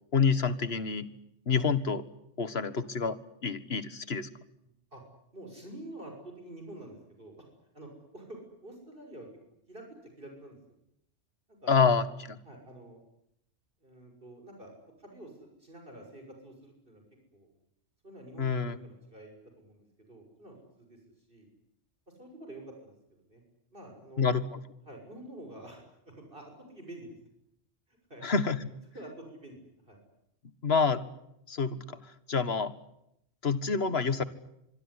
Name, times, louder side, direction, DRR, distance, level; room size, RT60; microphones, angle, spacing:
voice 1, 0.1-1.1 1.5-2.0 2.4-4.3 11.7-12.4 18.4-18.8 24.2-24.4 28.2-28.6 30.6-31.0 31.5-32.0 32.3-32.7 33.4-34.2, left 5 dB, 55° left, 14 dB, 1.9 m, -27 dB
voice 2, 5.3-7.4 7.7-9.3 9.7-9.8 10.2-10.6 11.6-12.0 12.4-13.0 13.8-14.7 15.0-17.0 17.3-17.5 18.0-21.5 22.2-23.4 23.7-24.2 24.8-27.2 27.9-28.3 28.9-30.0, right 1 dB, 45° right, 2 dB, 6.6 m, -48 dB
26.0 x 22.0 x 9.8 m, 0.80 s
omnidirectional pair, 1.3 m